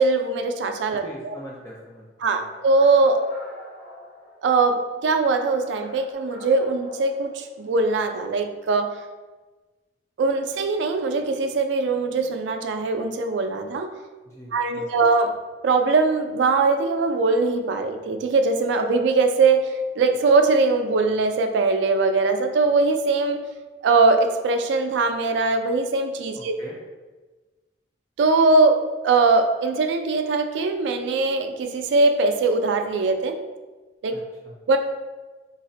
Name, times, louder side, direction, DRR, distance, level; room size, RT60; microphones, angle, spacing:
voice 1, 0.0-1.3 2.2-3.2 4.4-8.9 10.2-13.9 14.5-15.3 15.6-23.4 23.8-26.5 28.2-28.8 29.0-33.4 34.0-34.2 34.7-34.8, right 3 dB, 70° right, 6 dB, 0.3 m, -21 dB
voice 2, 1.0-2.0 2.4-2.5 14.2-14.9 26.4-26.8 34.1-34.5, equal, 15° left, -4 dB, 0.4 m, -42 dB
sound 1, 2.4-4.8 5.4-7.8, equal, 85° left, 0.7 m, -44 dB
3.9 x 2.1 x 2.6 m, 1.3 s
head